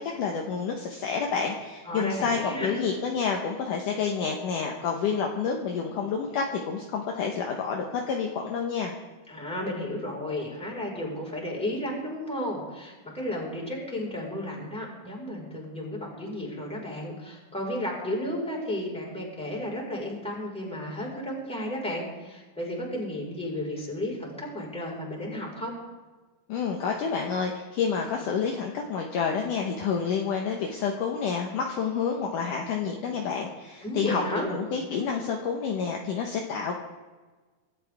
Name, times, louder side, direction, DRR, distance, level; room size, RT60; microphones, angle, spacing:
voice 1, 0.0-8.9 26.5-34.2 34.5-36.8, left 6 dB, 65° left, 1 dB, 2.5 m, -29 dB
voice 2, 1.8-2.7 9.3-25.7 33.8-34.5, left 1 dB, ahead, -4 dB, 4.6 m, -33 dB
25.5 x 13.0 x 3.6 m, 1.3 s
omnidirectional pair, 4.4 m